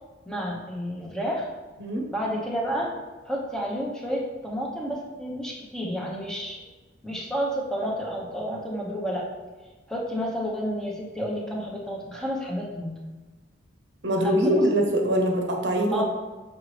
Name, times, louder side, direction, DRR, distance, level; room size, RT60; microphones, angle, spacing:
voice 1, 0.3-1.5 2.1-2.9 3.3-6.6 7.0-9.2 9.9-12.9 14.2-14.6 15.9-16.0, equal, 5° left, -3 dB, 0.9 m, -30 dB
voice 2, 14.0-16.0, equal, 65° right, 2 dB, 0.9 m, -23 dB
6.3 x 5.0 x 3.2 m, 1.2 s
head